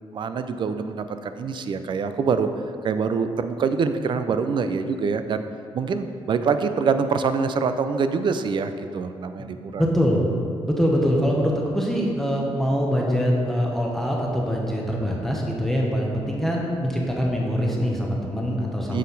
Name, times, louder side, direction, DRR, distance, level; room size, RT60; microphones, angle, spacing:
voice 1, 0.1-2.5 2.8-5.4 5.7-9.8 18.9-19.0, right 5 dB, 50° right, 9 dB, 0.4 m, -25 dB
voice 2, 9.8-10.3 10.7-19.0, equal, 5° left, -2 dB, 0.8 m, -23 dB
7.3 x 4.2 x 4.0 m, 2.4 s
cardioid pair, 95°, 10 cm